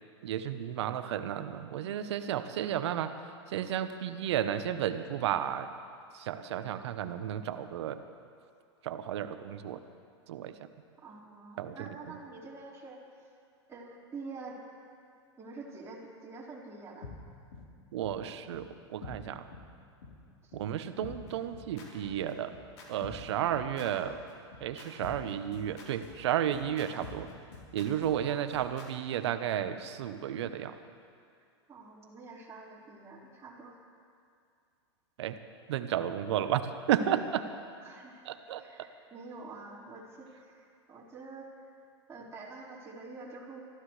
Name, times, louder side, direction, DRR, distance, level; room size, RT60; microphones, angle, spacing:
voice 1, 0.2-3.1 3.5-5.7 6.1-8.0 8.8-9.8 10.3-10.6 11.6-12.0 17.9-19.5 20.5-22.5 22.9-24.2 24.6-27.3 27.7-30.8 35.2-35.4 35.7-37.5 38.3-38.6, right 10 dB, 70° right, 10 dB, 1.0 m, -32 dB
voice 2, 11.0-13.0 13.7-14.6 15.4-17.1 20.4-20.5 28.2-28.5 31.7-33.8 37.8-38.2 38.6-41.8 42.1-43.6, right 3 dB, 15° right, -6 dB, 4.6 m, -47 dB
sound 1, 17.0-17.1 17.5-17.6 18.0-18.1 18.5-18.6 19.0-19.1 19.5-19.6 20.0-20.1 20.5-20.6 21.0-28.9, left 4 dB, 70° left, 3.8 m, -46 dB
23.5 x 14.5 x 3.3 m, 2.3 s
hypercardioid pair, 105°, 15 cm